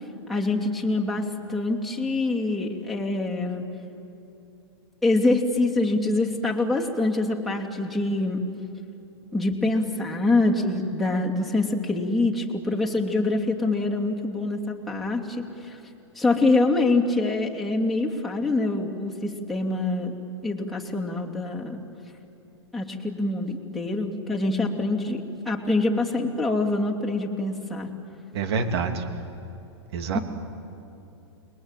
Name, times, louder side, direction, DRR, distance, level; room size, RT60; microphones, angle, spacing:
voice 1, 0.3-3.6 5.0-8.4 9.3-15.8 16.1-20.1 20.4-21.8 22.7-27.9 30.1-30.2, left 2 dB, ahead, -3 dB, 2.8 m, -25 dB
voice 2, 28.3-29.2 29.9-30.2, right 5 dB, 65° right, 7 dB, 2.7 m, -27 dB
29.5 x 21.0 x 9.1 m, 2.9 s
hypercardioid pair, 125°, 15 cm